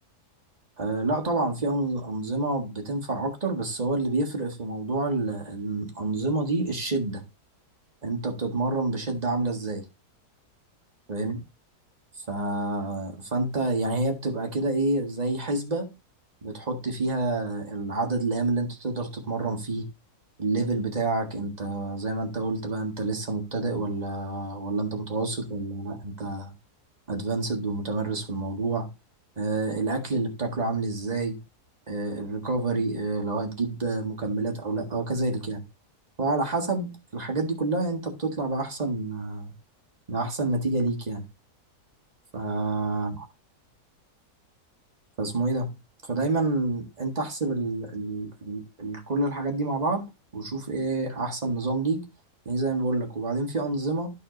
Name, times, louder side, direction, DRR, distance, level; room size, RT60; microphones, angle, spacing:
voice 1, 0.8-7.2 8.0-9.8 11.1-11.4 12.3-15.9 16.4-19.8 20.4-26.5 27.1-28.9 29.4-31.4 31.9-35.6 36.2-39.5 40.1-41.2 42.3-43.2 45.2-45.7 46.0-50.0 50.3-52.0 52.4-54.1, right 2 dB, 25° right, 1.7 m, -28 dB
12.0 x 4.2 x 3.9 m
omnidirectional pair, 1.7 m